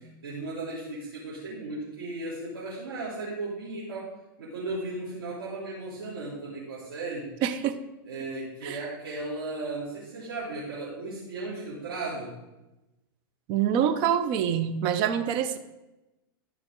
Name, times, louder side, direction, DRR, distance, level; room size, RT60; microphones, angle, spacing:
voice 1, 0.2-4.1 4.4-7.3 8.0-12.3, right 2 dB, 85° right, -10 dB, 3.4 m, -36 dB
voice 2, 7.4-7.8 8.6-8.8 13.5-15.6, right 9 dB, 45° right, 10 dB, 0.8 m, -25 dB
13.5 x 6.1 x 3.8 m, 1.0 s
hypercardioid pair, 120°, 12 cm